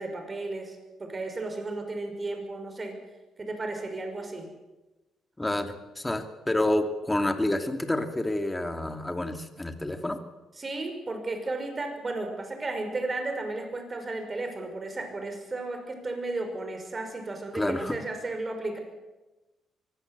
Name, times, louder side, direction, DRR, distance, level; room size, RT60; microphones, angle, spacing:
voice 1, 0.0-3.0 3.4-4.5 10.6-18.8, right 2 dB, 30° right, 5 dB, 5.9 m, -34 dB
voice 2, 5.4-10.2 17.5-18.0, left 1 dB, 10° left, 6 dB, 2.6 m, -28 dB
23.5 x 17.0 x 8.2 m, 1.1 s
cardioid pair, 90°, 0 cm